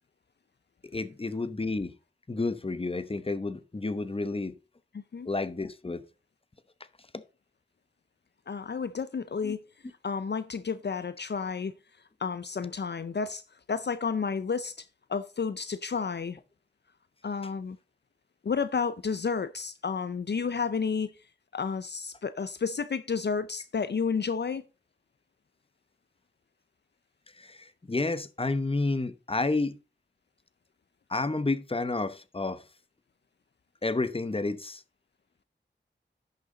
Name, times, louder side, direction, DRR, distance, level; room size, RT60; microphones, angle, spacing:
voice 1, 0.9-1.9 2.3-4.5 5.3-6.0 7.1-7.2 9.4-9.5 27.4-29.8 31.1-32.6 33.8-34.8, left 3 dB, 30° left, 0.9 m, -30 dB
voice 2, 4.9-5.3 8.5-9.6 10.0-11.7 12.2-13.4 13.7-16.4 17.2-17.8 18.4-21.1 21.5-24.6, left 5 dB, 60° left, 0.5 m, -31 dB
10.5 x 6.7 x 3.8 m
wide cardioid pair, 70°, 20 cm